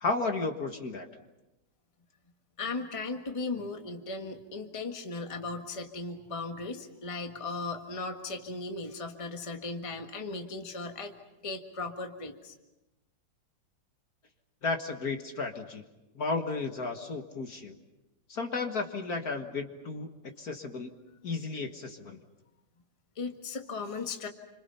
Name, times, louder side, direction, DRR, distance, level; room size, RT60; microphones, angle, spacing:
voice 1, 0.0-1.1 14.6-15.8 16.2-17.8 18.3-20.9 21.2-22.2, left 3 dB, 50° left, 5 dB, 1.9 m, -33 dB
voice 2, 2.6-11.1 11.4-12.5 23.1-24.3, left 3 dB, 15° left, 4 dB, 1.5 m, -37 dB
29.5 x 26.0 x 5.7 m, 0.99 s
omnidirectional pair, 2.2 m